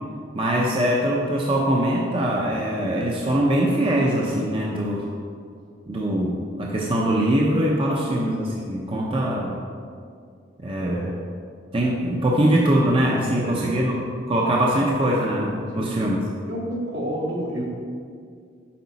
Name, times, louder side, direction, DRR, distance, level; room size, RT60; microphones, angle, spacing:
voice 1, 0.3-5.1 5.9-9.6 10.6-11.0 11.7-14.0 14.3-16.2, right 1 dB, 30° right, -3 dB, 0.7 m, -22 dB
voice 2, 7.8-8.2 8.9-9.3 10.8-11.2 13.4-13.8 15.7-15.9 16.5-17.6, equal, 75° right, -4 dB, 1.9 m, -31 dB
8.6 x 5.3 x 4.1 m, 2.2 s
head